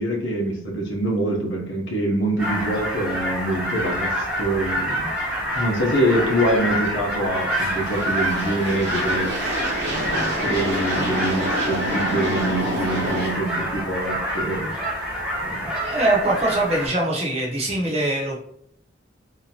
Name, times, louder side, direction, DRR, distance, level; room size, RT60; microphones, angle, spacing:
voice 1, 0.0-5.1 5.5-9.3 9.9-14.7 15.4-15.7, right 1 dB, 80° left, 0 dB, 0.9 m, -25 dB
sound 1, 2.4-16.9, equal, 5° right, 0.9 m, -27 dB
sound 2, 7.6-13.3, equal, 65° right, 0.9 m, -28 dB
voice 2, 15.8-18.4, right 2 dB, 35° right, -3 dB, 0.8 m, -22 dB
3.7 x 2.8 x 2.9 m, 0.67 s
head